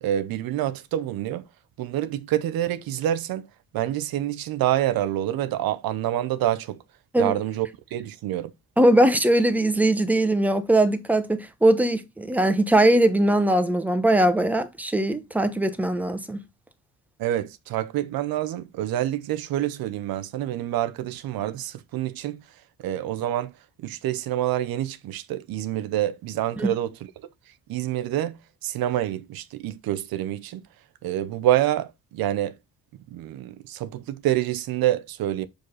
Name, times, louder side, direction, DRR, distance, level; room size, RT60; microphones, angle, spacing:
voice 1, 0.0-1.5 1.8-3.5 3.7-6.8 7.2-8.5 17.2-22.4 22.8-23.5 23.8-26.9 27.7-30.6 31.0-32.5 33.1-35.5, right 13 dB, 80° right, 0.8 m, -27 dB
voice 2, 8.8-16.4 26.6-26.7, right 1 dB, 5° right, 1.0 m, -20 dB
6.5 x 5.3 x 4.0 m
cardioid pair, 115°, 35 cm